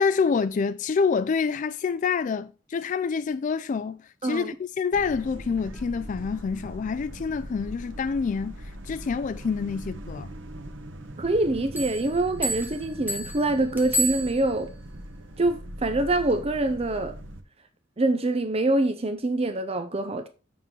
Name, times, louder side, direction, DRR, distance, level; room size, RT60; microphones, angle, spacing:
voice 1, 0.0-10.3, left 5 dB, 40° left, 0.3 m, -27 dB
voice 2, 4.2-4.5 11.2-14.7 15.4-17.2 18.0-20.3, right 2 dB, 30° right, 0.7 m, -25 dB
sound 1, 4.9-17.4, right 1 dB, 90° right, 1.2 m, -41 dB
sound 2, 11.7-14.8, right 1 dB, 10° right, 1.7 m, -31 dB
7.4 x 6.7 x 3.8 m
head